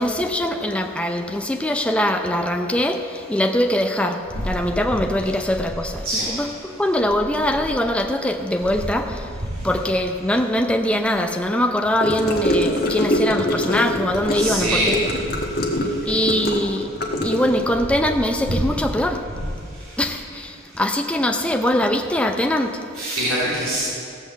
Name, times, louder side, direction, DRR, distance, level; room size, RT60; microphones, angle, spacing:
voice 1, 0.0-9.3 9.6-15.1 15.8-16.9 17.2-19.2 20.0-22.9, left 1 dB, 5° left, 4 dB, 0.5 m, -22 dB
Gurgling / Car passing by / Sink (filling or washing), 12.0-17.7, left 1 dB, 45° left, 1.4 m, -24 dB
voice 2, 14.3-14.9 22.9-23.8, right 1 dB, 85° right, -10 dB, 3.2 m, -23 dB
16.0 x 5.9 x 7.3 m, 2.3 s
head